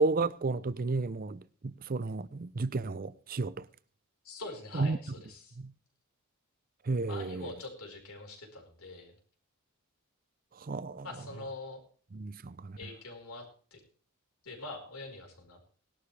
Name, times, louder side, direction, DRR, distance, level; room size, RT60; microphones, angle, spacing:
voice 1, 0.0-3.7 4.7-5.0 5.6-5.7 6.8-7.5 10.6-11.1 12.1-12.8, right 3 dB, 40° right, 0.6 m, -32 dB
voice 2, 4.2-5.6 7.1-9.1 11.0-11.8 12.8-13.8 14.4-15.6, left 2 dB, 75° left, 4.5 m, -44 dB
20.0 x 11.5 x 3.3 m
head